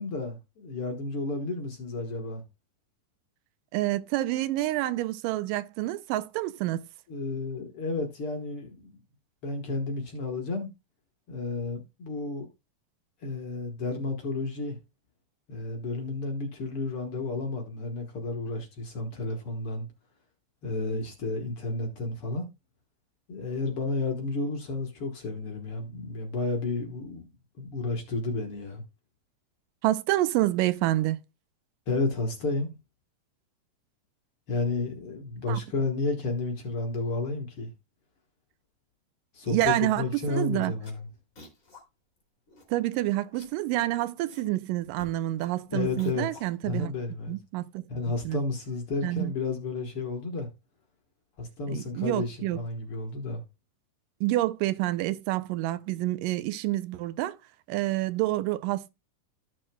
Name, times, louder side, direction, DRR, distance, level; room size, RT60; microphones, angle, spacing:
voice 1, 0.0-2.4 7.1-9.0 9.4-10.7 11.3-12.5 13.2-14.8 15.5-19.9 20.6-22.5 23.3-27.3 27.6-28.8 31.9-32.7 34.5-37.7 39.3-41.1 45.7-46.2 46.6-47.3 47.9-50.5 51.4-53.4, left 3 dB, 55° left, 1.7 m, -32 dB
voice 2, 3.7-6.8 29.8-31.2 35.5-35.6 39.5-40.7 42.7-46.9 47.3-47.8 48.2-48.4 49.0-49.3 51.7-52.6 54.2-57.4 57.7-58.9, right 16 dB, 90° right, 2.3 m, -28 dB
sound 1, 40.2-40.4 40.7-41.8 42.2-42.3 42.5-43.0 43.2-44.5 44.8-47.0, left 2 dB, 25° left, 2.7 m, -52 dB
14.0 x 6.3 x 2.2 m
omnidirectional pair, 3.8 m